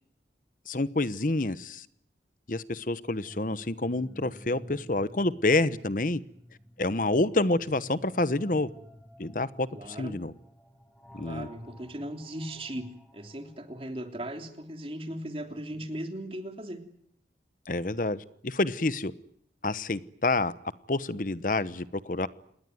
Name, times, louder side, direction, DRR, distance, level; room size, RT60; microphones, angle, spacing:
voice 1, 0.7-1.9 2.5-6.2 6.8-8.7 9.2-10.3 11.1-11.5 17.7-19.1 19.6-20.5 20.9-22.3, left 2 dB, 50° left, 15 dB, 1.0 m, -28 dB
sound 1, 2.9-14.8, equal, 5° left, 3.1 m, -52 dB
voice 2, 9.7-10.2 11.1-16.8, right 1 dB, 30° right, 5 dB, 3.2 m, -38 dB
27.5 x 20.5 x 9.4 m, 0.71 s
head